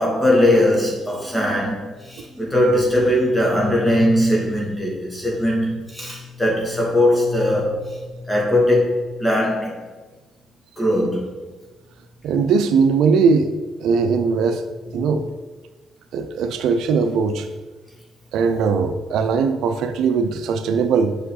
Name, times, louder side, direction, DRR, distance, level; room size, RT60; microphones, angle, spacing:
voice 1, 0.0-9.8 10.8-11.3, left 1 dB, 10° left, -3 dB, 2.2 m, -20 dB
voice 2, 12.2-13.5 13.8-15.3 16.1-17.5 18.3-21.2, right 5 dB, 80° right, 8 dB, 0.5 m, -20 dB
6.3 x 5.6 x 3.9 m, 1.3 s
cardioid pair, 90°, 0 cm